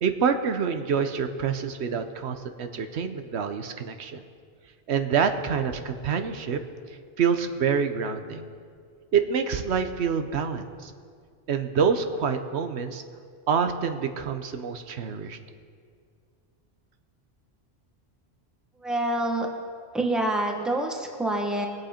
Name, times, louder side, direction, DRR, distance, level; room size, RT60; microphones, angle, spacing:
voice 1, 0.0-4.2 4.9-6.6 7.2-8.5 9.1-10.9 11.5-13.0 13.5-15.4, right 6 dB, 85° right, 8 dB, 1.1 m, -26 dB
voice 2, 18.8-19.5 19.9-21.7, right 1 dB, ahead, 2 dB, 1.1 m, -26 dB
20.5 x 7.9 x 4.3 m, 2.1 s
omnidirectional pair, 1.1 m